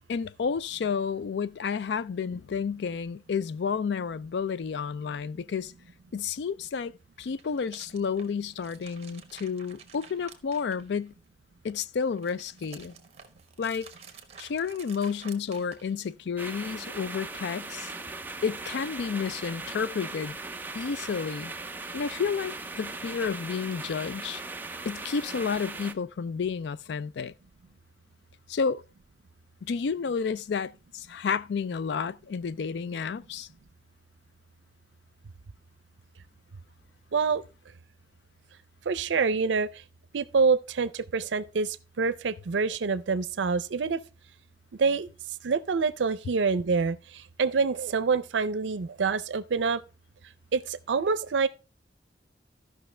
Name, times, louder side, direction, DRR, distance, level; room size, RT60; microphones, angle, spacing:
voice 1, 0.1-5.7 6.1-11.1 11.6-12.9 13.6-13.9 14.4-17.9 18.4-20.4 20.7-21.5 21.9-24.4 24.9-27.3 28.5-28.8 29.6-33.5, left 6 dB, 70° left, 0.4 m, -31 dB
sound 1, 7.1-11.3 11.6-16.3, right 6 dB, 35° right, 1.2 m, -51 dB
sound 2, 16.4-25.9, right 3 dB, 10° right, 0.5 m, -39 dB
voice 2, 37.1-37.4 38.9-39.7 40.1-44.0 44.8-45.1 45.4-49.8 50.5-51.5, right 4 dB, 90° right, 0.5 m, -26 dB
14.0 x 5.7 x 3.3 m
head